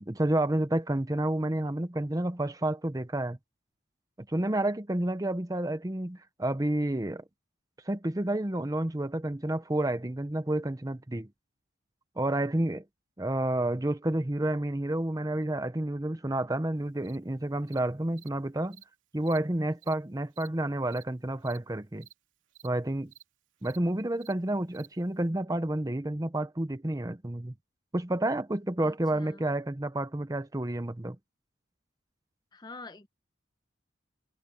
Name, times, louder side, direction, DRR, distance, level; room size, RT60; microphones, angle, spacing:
voice 1, 0.0-3.4 4.2-7.2 7.9-11.3 12.2-12.8 13.2-18.8 19.1-22.1 22.6-23.1 23.6-27.5 27.9-31.2, right 1 dB, 20° right, 0.7 m, -30 dB
Cricket, 17.0-17.2 17.7-17.8 18.2-18.3 18.7-18.8 19.2-19.4 19.8-19.9 20.3-20.5 20.9-21.0 21.4-21.6 22.0-22.1 22.5-22.7 23.1-23.2 23.6-23.8 24.2-24.3 24.7-24.9, right 11 dB, 75° right, 2.9 m, -52 dB
voice 2, 28.8-29.4 32.5-33.1, left 3 dB, 20° left, 0.8 m, -46 dB
head